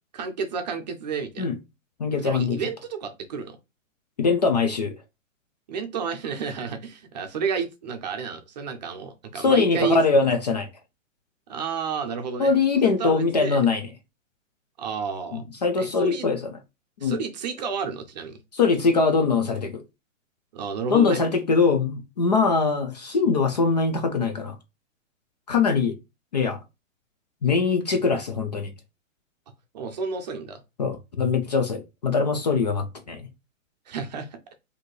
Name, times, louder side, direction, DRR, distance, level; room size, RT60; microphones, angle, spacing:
voice 1, 0.1-1.5 2.2-3.6 5.7-10.0 11.5-12.5 12.8-13.6 14.8-15.4 15.8-16.3 17.0-18.4 20.5-21.2 29.7-30.6 33.9-34.4, right 6 dB, 35° right, 0.6 m, -31 dB
voice 2, 2.0-2.6 4.2-4.9 9.4-10.7 12.4-13.9 15.3-16.5 17.0-17.2 18.5-19.8 20.9-24.5 25.5-26.0 26.3-26.6 27.4-28.7 30.8-33.2, left 4 dB, 35° left, 0.4 m, -22 dB
4.1 x 2.8 x 3.1 m
hypercardioid pair, 165°, 40 cm